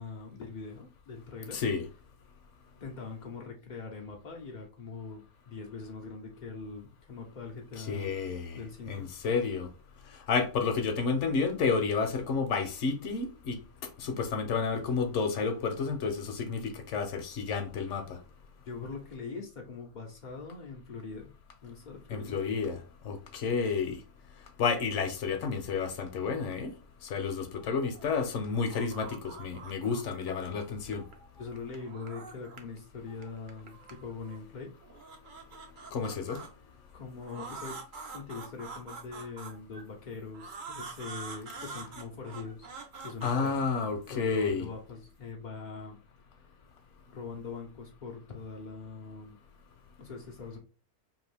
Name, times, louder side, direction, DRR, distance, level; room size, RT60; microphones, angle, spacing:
voice 1, 0.0-1.6 2.8-8.1 8.5-9.1 18.6-21.3 21.6-22.4 31.4-34.7 36.9-37.8 38.1-42.7 43.0-43.6 44.1-46.0 47.1-49.4 50.0-50.6, left 4 dB, 85° left, 0.4 m, -42 dB
voice 2, 1.5-1.8 7.8-8.6 8.9-9.7 10.3-13.6 14.0-18.1 22.1-24.0 24.6-26.7 27.0-31.0 35.9-36.4 43.2-44.7, left 5 dB, 65° left, 0.8 m, -30 dB
sound 1, 27.6-28.1 28.4-30.5 30.8-32.8 33.0-34.4 34.8-36.5 37.2-39.8 40.3-44.1, right 4 dB, 65° right, 0.5 m, -46 dB
2.8 x 2.5 x 3.2 m
omnidirectional pair, 1.5 m